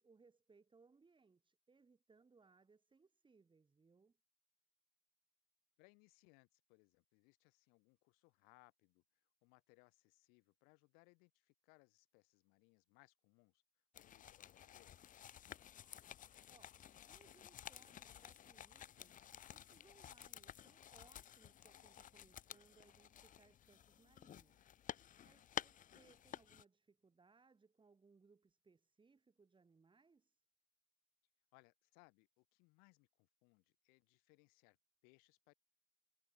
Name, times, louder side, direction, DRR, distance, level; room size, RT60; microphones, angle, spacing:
voice 1, 0.0-4.2 16.5-30.4, right 4 dB, 30° right, 5.4 m, -70 dB
voice 2, 5.8-13.6 14.0-15.0 25.5-25.6 31.5-34.8 35.0-35.5, left 32 dB, 85° left, 3.1 m, -70 dB
sound 1, 13.9-26.6, left 10 dB, 60° left, 1.9 m, -53 dB
hypercardioid pair, 55°, 15 cm